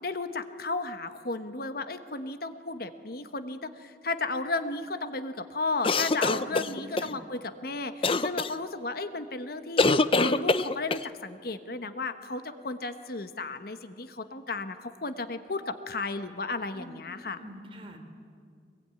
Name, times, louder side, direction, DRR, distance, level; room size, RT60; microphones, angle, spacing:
voice 1, 0.0-9.9 10.2-17.4, left 3 dB, 55° left, 9 dB, 1.2 m, -34 dB
sound 1, 5.8-7.1 8.0-8.5 9.8-11.1, left 3 dB, 30° left, 0.6 m, -24 dB
voice 2, 6.5-7.1 16.7-16.9 17.3-18.0, equal, 30° right, 3 dB, 3.6 m, -45 dB
25.0 x 22.0 x 9.7 m, 2.2 s
head